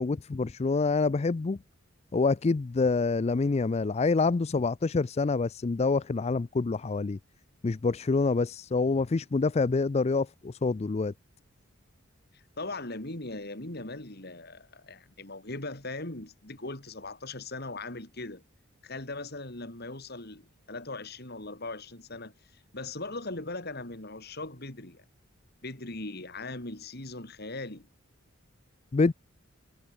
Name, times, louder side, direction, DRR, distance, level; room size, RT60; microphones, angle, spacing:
voice 1, 0.0-1.6 2.1-7.2 7.6-11.1 28.9-29.1, left 4 dB, 30° left, 0.4 m, -26 dB
voice 2, 12.3-18.4 18.8-25.0 25.6-27.9, left 2 dB, 50° left, 3.7 m, -39 dB
head